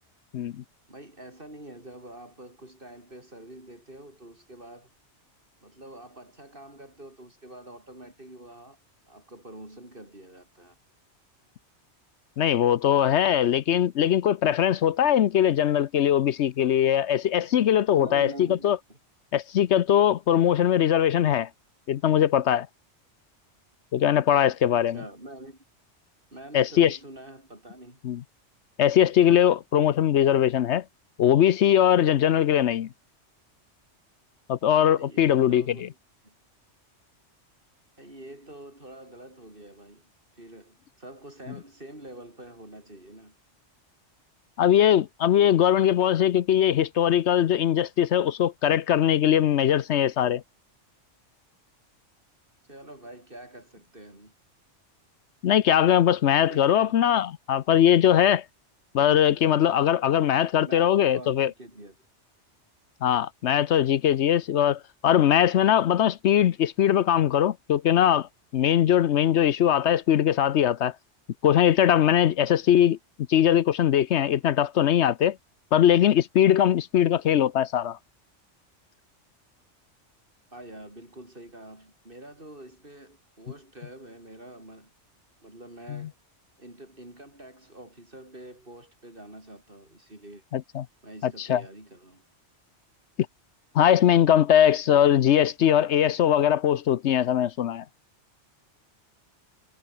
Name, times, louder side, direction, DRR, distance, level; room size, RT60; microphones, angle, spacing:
voice 1, 0.9-4.9 5.6-8.8 9.1-10.8 17.9-19.0 20.7-20.8 24.9-25.6 26.3-28.0 34.9-36.0 36.2-36.4 38.0-40.1 40.4-43.4 52.7-54.3 56.5-57.0 60.6-62.0 80.5-84.9 85.4-86.1 86.6-90.4 91.0-92.2, right 1 dB, 50° right, 7.5 m, -45 dB
voice 2, 12.4-18.3 18.6-18.8 19.3-21.5 21.9-22.7 23.9-25.0 26.5-27.0 28.0-28.2 28.8-30.8 31.2-32.9 34.5-35.6 44.6-50.4 55.4-58.4 58.9-61.5 63.0-68.3 68.5-70.9 71.4-73.0 73.3-75.4 75.7-78.0 85.9-86.1 90.5-90.8 91.2-91.6 93.7-97.8, left 10 dB, 75° left, 1.0 m, -21 dB
omnidirectional pair, 1.2 m